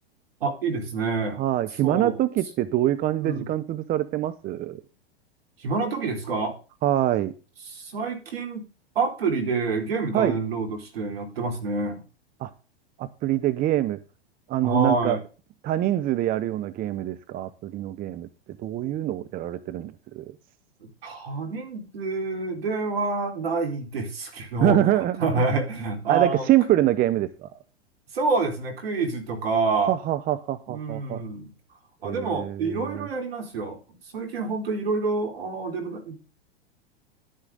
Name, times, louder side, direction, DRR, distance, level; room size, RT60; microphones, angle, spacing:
voice 1, 0.4-1.4 1.8-2.2 3.2-3.5 5.6-6.6 7.7-8.7 9.0-12.0 14.6-15.2 21.0-26.5 28.1-30.0 30.7-31.5 32.0-33.8 34.1-36.2, right 4 dB, 70° right, 4 dB, 4.2 m, -27 dB
voice 2, 1.4-4.8 6.8-7.3 10.1-10.4 12.4-12.5 13.0-14.0 14.5-15.2 15.6-18.3 18.6-20.3 24.6-25.6 26.1-27.5 29.9-31.2 32.0-33.1, right 13 dB, 30° right, 12 dB, 0.8 m, -25 dB
11.5 x 10.5 x 3.9 m, 0.34 s
hypercardioid pair, 100°, 31 cm